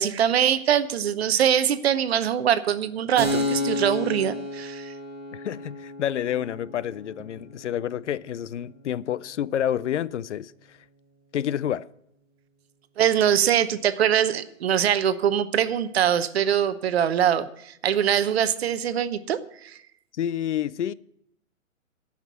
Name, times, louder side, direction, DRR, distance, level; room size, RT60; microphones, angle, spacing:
voice 1, 0.0-4.9 13.0-19.8, right 9 dB, 50° right, 0.9 m, -23 dB
Keyboard (musical), 3.2-10.5, left 1 dB, 15° right, 1.5 m, -33 dB
voice 2, 5.3-10.8 11.3-11.9 20.1-20.9, left 10 dB, 60° left, 0.5 m, -29 dB
13.5 x 5.9 x 8.5 m
hypercardioid pair, 145°, 40 cm